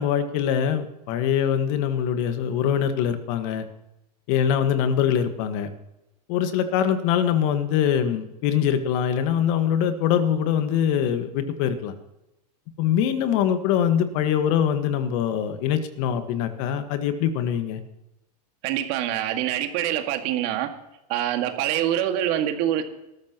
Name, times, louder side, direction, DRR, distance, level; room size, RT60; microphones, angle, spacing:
voice 1, 0.0-3.6 4.3-5.7 6.3-11.9 12.8-17.8, left 9 dB, 55° left, 9 dB, 1.6 m, -23 dB
voice 2, 18.6-20.7 21.1-22.8, right 11 dB, 50° right, 5 dB, 2.0 m, -25 dB
19.5 x 13.5 x 3.0 m, 0.92 s
hypercardioid pair, 115°, 21 cm